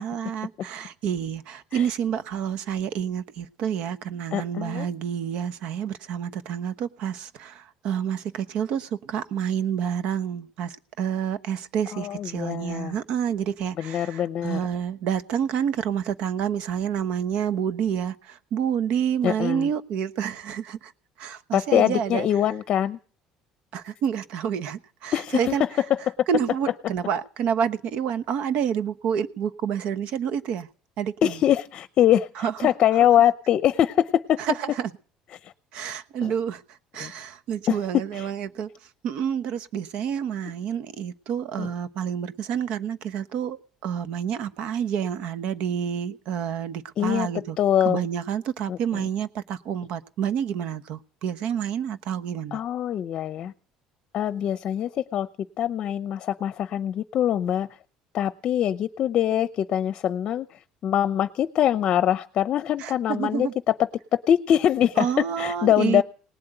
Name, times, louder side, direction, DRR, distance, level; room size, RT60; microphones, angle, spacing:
voice 1, 0.0-20.9 21.2-22.3 23.7-25.6 26.3-30.7 31.0-31.4 32.4-32.5 34.4-34.9 35.7-36.6 36.9-38.7 39.0-47.6 47.8-52.6 62.8-63.5 65.0-66.0, right 8 dB, 60° right, 1.0 m, -28 dB
voice 2, 4.3-4.9 11.9-12.9 13.8-14.6 19.2-19.7 21.5-23.0 25.1-25.5 25.9-26.1 31.2-34.4 35.4-35.5 36.2-36.3 37.0-37.1 37.7-37.8 38.1-38.3 41.6-41.7 47.0-47.3 47.6-48.0 48.7-49.0 52.5-53.5 54.1-55.3 55.6-57.7 58.1-63.7 64.1-65.1 65.4-66.0, left 10 dB, 45° left, 0.7 m, -23 dB
19.0 x 7.8 x 9.0 m
cardioid pair, 145°, 2 cm